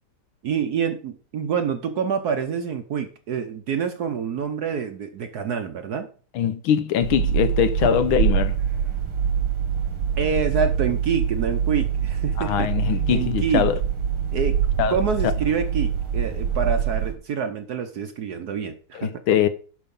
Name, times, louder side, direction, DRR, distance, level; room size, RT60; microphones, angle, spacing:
voice 1, 0.4-6.1 10.2-12.7 13.1-13.6 14.3-14.6 14.9-19.1, right 6 dB, 60° right, 1.1 m, -27 dB
voice 2, 6.3-8.5 12.4-13.8 14.8-15.0 18.9-19.5, left 9 dB, 75° left, 1.6 m, -22 dB
sound 1, 7.0-17.1, right 8 dB, 90° right, 2.7 m, -24 dB
11.5 x 5.4 x 5.3 m
omnidirectional pair, 2.4 m